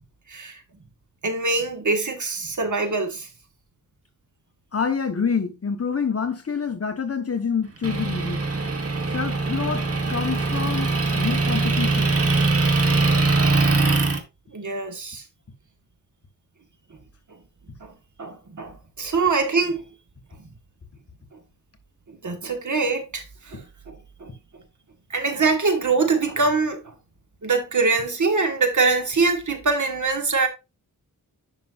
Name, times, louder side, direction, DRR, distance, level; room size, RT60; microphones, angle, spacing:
voice 1, 0.3-0.6 1.2-3.3 14.5-15.2 17.8-17.9 18.2-19.8 22.1-23.9 24.2-24.3 25.1-26.9 27.4-30.5, right 4 dB, 60° right, 1.5 m, -24 dB
voice 2, 4.7-8.5 9.1-12.1, left 6 dB, 45° left, 1.1 m, -27 dB
Motor vehicle (road) / Engine, 7.8-14.2, right 3 dB, 40° right, 1.3 m, -22 dB
10.5 x 5.6 x 2.5 m
wide cardioid pair, 105°, 35 cm